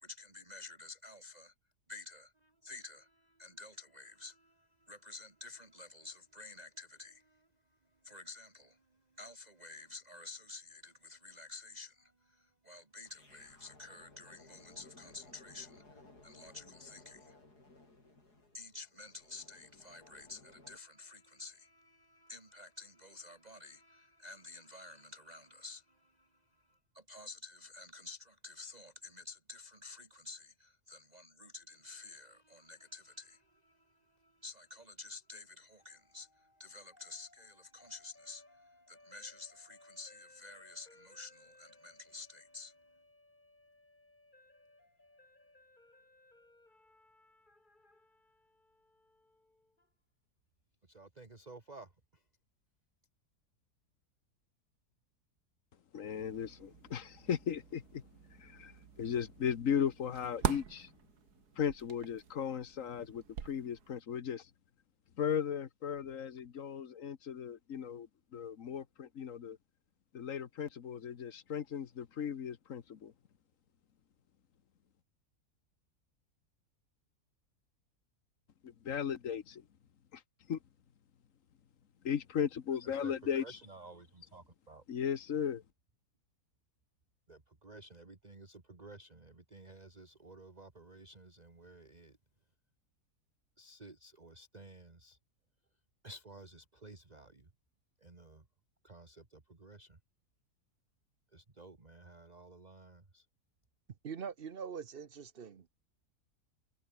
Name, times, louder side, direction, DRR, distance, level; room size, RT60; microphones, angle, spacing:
voice 1, 0.0-1.5 1.9-7.5 8.0-17.4 18.5-42.7 50.9-52.2 83.0-84.8 87.3-92.2 93.6-95.2 96.0-97.5 98.0-98.5 98.8-100.0 101.3-103.3, left 2 dB, 25° right, 2.0 m, -52 dB
sound 1, 13.0-20.8, left 2 dB, 85° left, 6.5 m, -59 dB
sound 2, 35.8-49.9, left 2 dB, 30° left, 4.0 m, -64 dB
voice 2, 55.9-58.0 58.4-60.9 61.6-64.5 65.2-68.1 68.3-69.6 70.1-73.1 78.6-79.6 80.1-80.2 80.5-80.6 82.0-83.6 84.9-85.6, left 8 dB, 60° left, 1.5 m, -36 dB
sound 3, 56.1-64.0, right 8 dB, 80° right, 2.0 m, -44 dB
voice 3, 104.0-105.7, right 7 dB, 45° right, 0.9 m, -43 dB
omnidirectional pair, 1.6 m